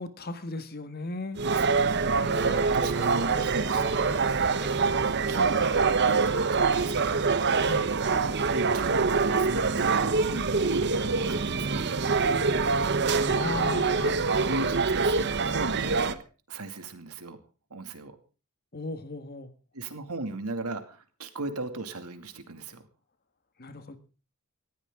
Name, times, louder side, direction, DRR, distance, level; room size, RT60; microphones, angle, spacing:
voice 1, 0.0-1.4 7.6-7.9 13.3-14.2 18.7-19.5 23.6-24.0, left 3 dB, 45° left, 10 dB, 1.7 m, -36 dB
sound 1, 1.4-16.1, right 4 dB, 50° right, 1.0 m, -25 dB
voice 2, 1.5-7.2 8.3-11.8 14.3-16.2 16.5-17.4 17.7-18.2 19.7-22.9, right 2 dB, 85° right, 7 dB, 2.4 m, -38 dB
sound 2, 2.2-6.8, equal, ahead, 1.3 m, -41 dB
19.0 x 15.0 x 3.7 m, 0.34 s
head